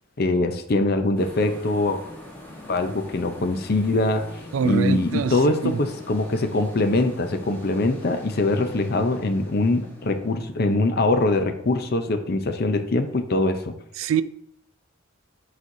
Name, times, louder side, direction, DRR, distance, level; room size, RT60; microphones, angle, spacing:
voice 1, 0.2-2.0 2.7-4.2 4.6-13.7, left 2 dB, 50° left, 0.6 m, -23 dB
sound 1, 1.1-11.7, left 1 dB, 10° left, 1.2 m, -42 dB
voice 2, 4.5-5.3 5.6-5.8 14.0-14.2, right 7 dB, 85° right, 0.3 m, -23 dB
9.3 x 4.2 x 2.7 m
head